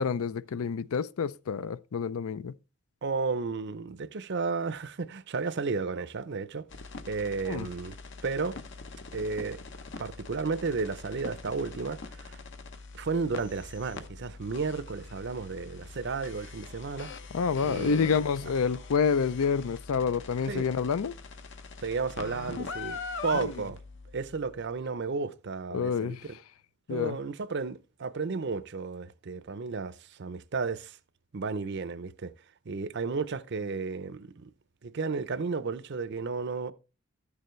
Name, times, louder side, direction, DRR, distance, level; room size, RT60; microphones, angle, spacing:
voice 1, 0.0-2.5 7.5-7.7 17.3-21.1 23.4-23.5 25.7-26.2 26.9-27.2, left 6 dB, 75° left, 0.4 m, -28 dB
voice 2, 3.0-6.6 7.1-8.0 8.2-8.6 9.1-9.6 10.0-12.4 12.9-17.1 17.6-18.1 20.5-20.7 21.8-23.8 24.1-26.4 26.9-31.0 31.3-32.3 32.7-34.5 34.8-36.7, right 4 dB, 50° right, 0.5 m, -33 dB
sound 1, 6.7-24.5, left 4 dB, 55° left, 0.8 m, -43 dB
12.5 x 6.8 x 3.1 m
head